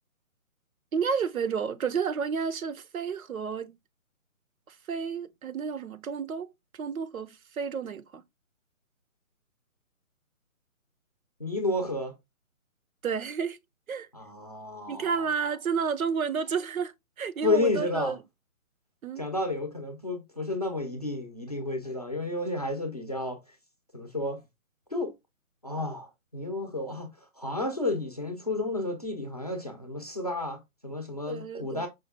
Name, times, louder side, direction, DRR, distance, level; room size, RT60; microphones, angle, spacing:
voice 1, 0.9-3.8 4.7-6.5 6.7-8.2 13.0-13.6 13.9-14.1 14.9-16.9 17.2-18.2 19.0-19.3 31.3-31.9, right 6 dB, 75° right, 0.7 m, -31 dB
voice 2, 11.4-12.1 14.1-15.1 17.4-18.1 19.2-23.4 23.9-24.4 24.9-25.1 25.6-27.1 27.4-31.9, left 2 dB, 30° left, 0.6 m, -31 dB
5.3 x 2.2 x 3.3 m
hypercardioid pair, 175°, 42 cm